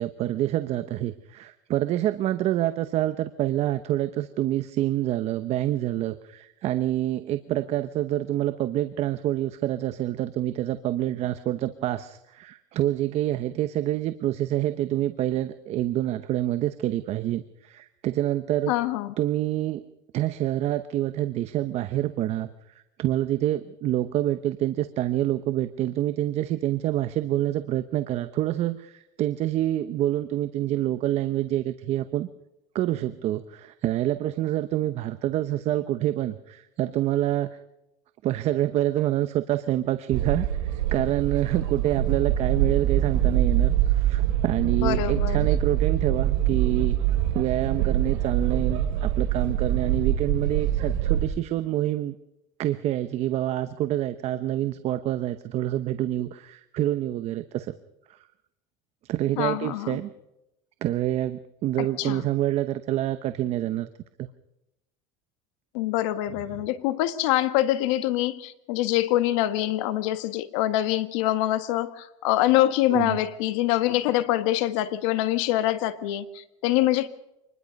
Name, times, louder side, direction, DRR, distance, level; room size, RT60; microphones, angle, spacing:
voice 1, 0.0-18.7 19.2-19.8 20.1-22.5 23.0-32.3 32.7-37.6 38.2-47.0 47.3-52.1 52.6-57.7 58.1-58.2 59.0-60.1 60.8-63.9 64.2-64.3 72.9-73.2, right 13 dB, 40° right, 11 dB, 0.9 m, -27 dB
voice 2, 18.7-19.1 44.8-45.5 59.4-60.0 61.8-62.3 65.7-77.1, left 14 dB, 75° left, 12 dB, 1.6 m, -25 dB
sound 1, 40.1-51.2, right 11 dB, 80° right, 3.0 m, -24 dB
25.5 x 20.5 x 5.3 m, 0.89 s
cardioid pair, 150°, 16 cm